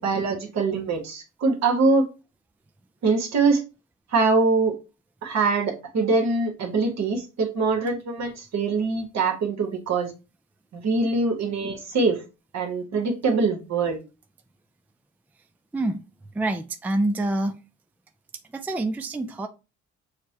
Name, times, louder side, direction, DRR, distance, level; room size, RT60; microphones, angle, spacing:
voice 1, 0.0-2.1 3.0-3.6 4.1-4.7 5.2-10.1 10.7-12.2 12.5-14.0, right 3 dB, 60° right, 1.3 m, -23 dB
voice 2, 16.3-17.6 18.5-19.5, right 2 dB, 5° right, 0.3 m, -26 dB
6.4 x 2.1 x 2.9 m
cardioid pair, 90°, 30 cm